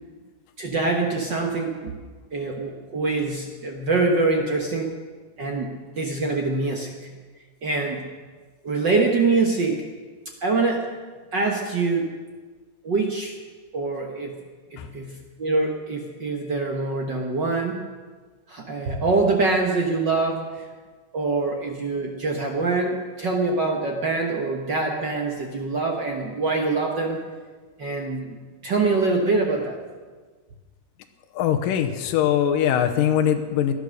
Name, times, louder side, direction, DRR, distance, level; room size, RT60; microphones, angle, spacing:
voice 1, 0.6-2.0 2.3-4.9 5.4-7.1 7.6-8.1 8.6-9.8 10.4-10.9 11.3-12.1 12.8-13.3 13.7-14.4 14.7-17.8 18.5-20.6 21.1-27.2 27.8-28.4 28.6-29.7, right 3 dB, 60° right, 1 dB, 1.1 m, -24 dB
voice 2, 31.4-33.7, left 9 dB, 85° left, 5 dB, 2.5 m, -21 dB
19.0 x 11.0 x 6.5 m, 1.4 s
omnidirectional pair, 3.8 m